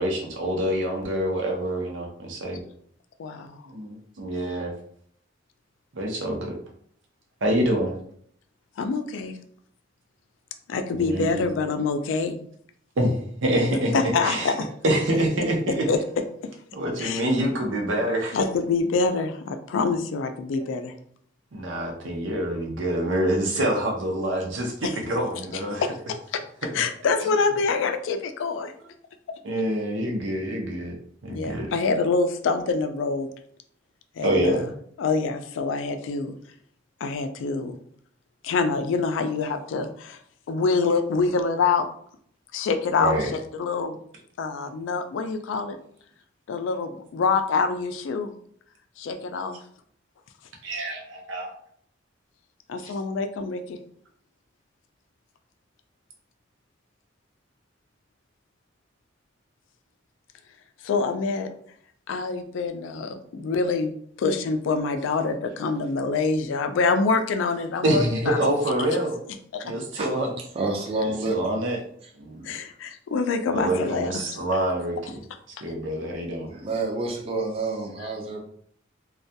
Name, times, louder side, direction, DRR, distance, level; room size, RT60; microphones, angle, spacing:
voice 1, 0.0-2.6 3.7-4.7 5.9-6.5 7.4-7.9 10.9-11.4 13.0-13.1 13.4-14.5 14.8-15.8 16.7-18.4 20.6-20.8 21.5-25.8 29.4-30.9 31.2-31.7 34.2-34.7 43.0-43.3 50.6-51.5 67.8-69.2 69.6-70.3 71.3-71.8 72.2-72.5 73.5-75.2 75.6-76.5, right 1 dB, 85° right, 1 dB, 0.6 m, -26 dB
voice 2, 3.2-3.6 8.8-9.4 10.7-12.4 13.9-14.7 15.7-16.0 17.0-17.3 18.3-20.9 24.8-24.9 25.8-26.4 26.7-28.7 31.3-33.3 34.2-34.6 35.0-36.3 37.0-37.8 38.4-40.2 40.5-41.9 42.5-44.0 44.4-45.8 46.5-48.3 49.0-49.6 52.7-53.8 60.8-61.5 62.1-63.9 64.2-68.5 69.5-69.7 72.4-74.2, left 4 dB, 90° left, 8 dB, 0.3 m, -26 dB
voice 3, 70.5-71.6 72.0-72.1 76.5-78.4, right 2 dB, 30° right, 0 dB, 0.4 m, -29 dB
2.3 x 2.2 x 2.7 m, 0.63 s
head